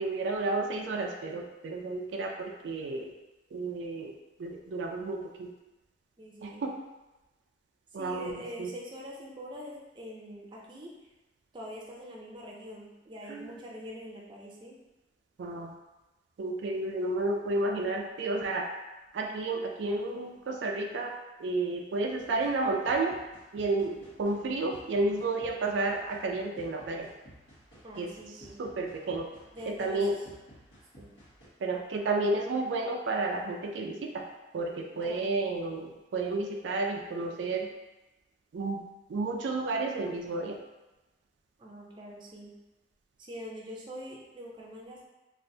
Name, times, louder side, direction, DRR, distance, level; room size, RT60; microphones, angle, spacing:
voice 1, 0.0-3.1 3.5-5.5 6.4-6.7 7.9-8.7 13.3-13.6 15.4-15.7 16.4-18.7 19.1-21.1 21.4-23.1 23.5-27.1 28.0-28.1 28.6-29.3 29.7-30.1 31.6-34.3 34.5-37.7 38.5-38.8 39.1-40.6, right 2 dB, 80° right, 1 dB, 0.4 m, -31 dB
voice 2, 6.2-6.6 7.9-10.9 11.5-14.8 27.8-28.6 29.5-30.0 31.0-31.1 35.0-35.4 41.6-42.5 43.2-45.0, equal, 25° right, -3 dB, 0.5 m, -44 dB
sound 1, 22.2-31.5, equal, 90° left, 1.4 m, -55 dB
3.2 x 2.5 x 2.7 m, 1.1 s
head